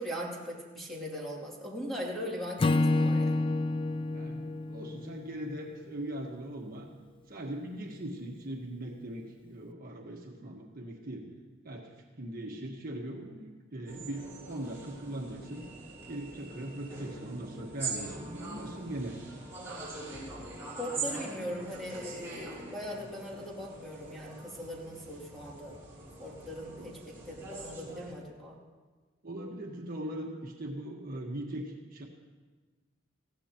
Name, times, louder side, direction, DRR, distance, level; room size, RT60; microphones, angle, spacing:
voice 1, 0.0-2.6 2.9-3.4 20.8-25.8 26.2-28.6, equal, ahead, -4 dB, 2.7 m, -40 dB
Acoustic guitar / Strum, 2.6-5.9, left 2 dB, 25° left, 0.3 m, -29 dB
voice 2, 4.1-6.9 7.3-11.2 11.6-11.9 12.2-15.6 16.1-19.2 26.8-27.2 29.2-32.0, right 1 dB, 50° right, 0 dB, 1.4 m, -40 dB
sound 1, 13.9-28.1, right 3 dB, 15° right, 5.8 m, -43 dB
20.5 x 15.5 x 3.0 m, 1.4 s
head